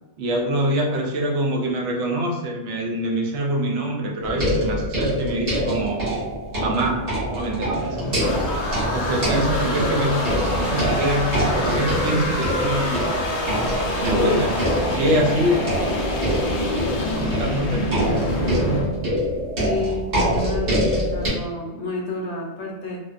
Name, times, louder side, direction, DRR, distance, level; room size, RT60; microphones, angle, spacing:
voice 1, 0.2-6.0 6.6-8.4 8.9-10.2 10.5-13.1 14.0-15.7 16.8-18.2, right 1 dB, 75° right, -1 dB, 0.8 m, -25 dB
sound 1, 4.2-21.3, equal, 55° right, 1.0 m, -25 dB
sound 2, 7.6-18.8, left 1 dB, 55° left, 0.4 m, -26 dB
voice 2, 19.6-23.0, left 3 dB, 75° left, -1 dB, 0.9 m, -30 dB
2.5 x 2.2 x 2.4 m, 1.2 s
omnidirectional pair, 1.2 m